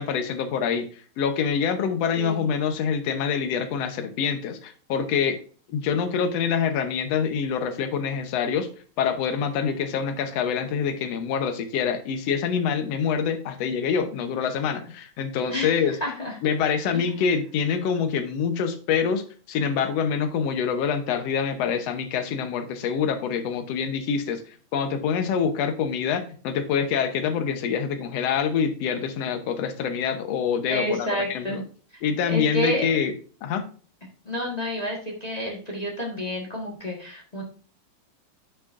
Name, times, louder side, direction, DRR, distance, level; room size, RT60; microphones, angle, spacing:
voice 1, 0.0-5.4 5.7-8.7 9.0-16.0 16.4-31.6 32.0-33.1 33.4-33.6, left 7 dB, 65° left, 8 dB, 1.7 m, -26 dB
voice 2, 2.1-2.4 15.5-16.4 16.9-17.0 30.7-31.6 32.3-32.9 34.2-37.4, left 1 dB, 30° left, -1 dB, 0.6 m, -29 dB
9.9 x 6.3 x 2.5 m, 0.40 s
omnidirectional pair, 3.7 m